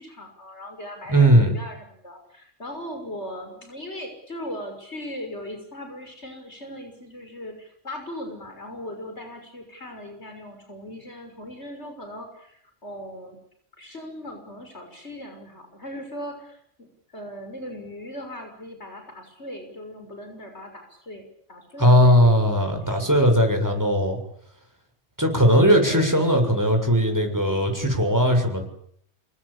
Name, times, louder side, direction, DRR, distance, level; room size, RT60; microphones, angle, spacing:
voice 1, 0.0-13.4 13.8-23.0 25.8-26.2, left 1 dB, 65° left, 5 dB, 6.6 m, -39 dB
voice 2, 1.1-1.5 21.8-24.2 25.2-28.6, equal, 15° right, 4 dB, 7.1 m, -18 dB
28.0 x 24.0 x 8.8 m, 0.68 s
omnidirectional pair, 1.2 m